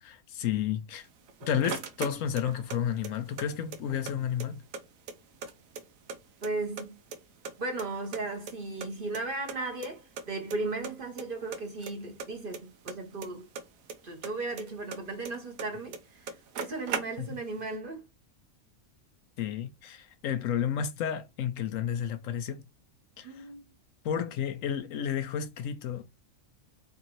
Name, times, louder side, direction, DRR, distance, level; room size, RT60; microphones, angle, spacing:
voice 1, 0.0-1.1 1.4-4.6 19.4-22.7 23.2-23.3 24.0-26.1, left 9 dB, 75° left, 0.9 m, -31 dB
sound 1, 1.0-2.8 3.0-4.1 4.4-4.5 4.7-6.2 6.4-7.2 7.4-8.9 9.1-9.2 9.5-9.6 9.8-9.9 10.2-10.6 10.8-11.2 11.5-14.0 14.2-15.7 15.9-16.0 16.2-17.5, right 6 dB, 80° right, 1.1 m, -38 dB
voice 2, 6.4-7.0 7.6-13.5 14.0-18.0 23.2-23.6, right 3 dB, 45° right, 1.0 m, -36 dB
3.7 x 3.4 x 3.0 m
omnidirectional pair, 1.4 m